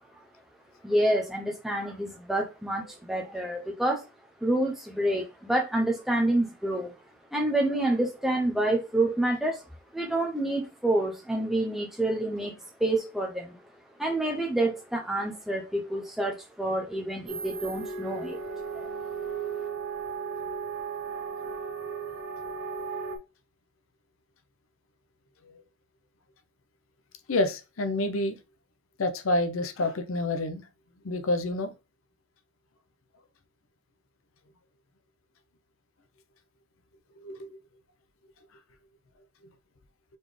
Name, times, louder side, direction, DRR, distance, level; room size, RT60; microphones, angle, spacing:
voice 1, 0.8-4.1 4.4-6.9 7.3-9.6 9.9-13.5 14.0-18.4 18.7-18.9, right 1 dB, ahead, 0.6 m, -28 dB
sound 1, 17.3-23.2, right 5 dB, 70° right, 0.9 m, -35 dB
voice 2, 27.3-28.4 29.0-30.6 31.0-31.7 37.2-37.4, left 2 dB, 75° left, 0.7 m, -28 dB
4.2 x 3.4 x 3.2 m
head